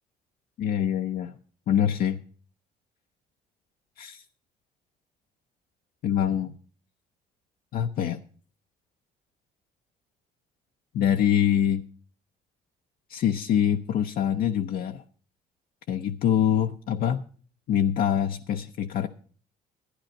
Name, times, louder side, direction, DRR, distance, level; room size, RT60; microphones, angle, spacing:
voice 1, 0.6-1.4 1.7-2.2 4.0-4.2 6.0-6.6 7.7-8.2 10.9-11.8 13.1-15.0 15.9-17.2 17.7-19.1, left 9 dB, 60° left, 0.6 m, -24 dB
12.0 x 9.7 x 5.2 m
cardioid pair, 110°, 17 cm